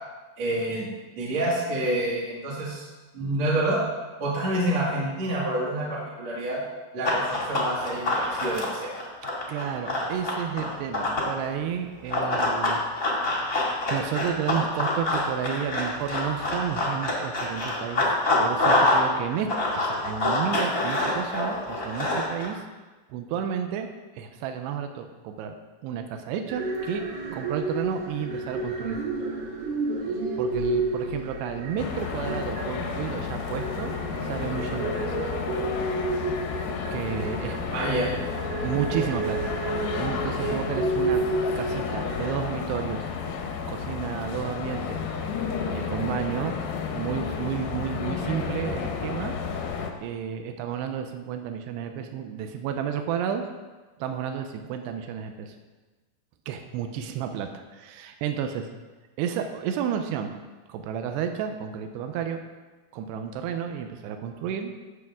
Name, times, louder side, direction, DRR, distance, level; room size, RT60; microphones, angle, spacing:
voice 1, 0.4-0.9 1.2-2.8 3.1-3.8 4.2-6.6 6.9-8.9 37.7-38.1 40.4-40.6, right 1 dB, 50° right, -7 dB, 2.3 m, -27 dB
Run, 7.0-11.3 12.1-19.1 19.3-22.5, left 2 dB, 65° left, 0.8 m, -26 dB
voice 2, 9.5-12.8 13.1-18.1 18.4-22.6 23.1-23.9 24.2-25.6 25.8-29.0 30.1-33.9 34.2-35.2 36.9-37.6 38.6-39.5 39.8-41.2 41.6-43.1 43.7-45.0 45.7-46.6 46.9-49.4 50.0-53.5 54.0-55.6 56.5-58.7 59.2-60.3 60.7-62.4 62.9-64.7, right 8 dB, 85° right, 6 dB, 2.4 m, -32 dB
sound 1, 26.5-42.3, right 2 dB, 65° right, 1.9 m, -31 dB
sound 2, 31.8-49.9, left 6 dB, 85° left, 2.1 m, -32 dB
16.5 x 7.0 x 3.7 m, 1.3 s
omnidirectional pair, 5.7 m